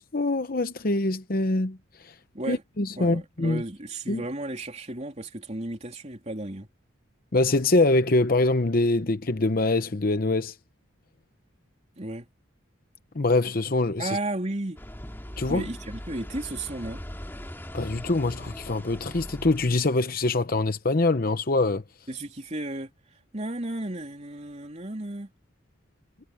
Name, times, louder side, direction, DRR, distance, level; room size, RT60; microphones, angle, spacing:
voice 1, 0.0-1.8 2.0-2.1 2.5-3.6 4.1-4.2 7.3-10.5 13.1-14.1 15.4-15.6 17.7-21.8, left 2 dB, 45° left, 0.9 m, -24 dB
voice 2, 3.0-6.7 12.0-12.3 14.0-14.8 15.5-17.0 22.1-22.9 23.3-25.3, right 1 dB, 35° right, 3.3 m, -34 dB
sound 1, 14.8-19.8, equal, 10° left, 2.3 m, -40 dB
head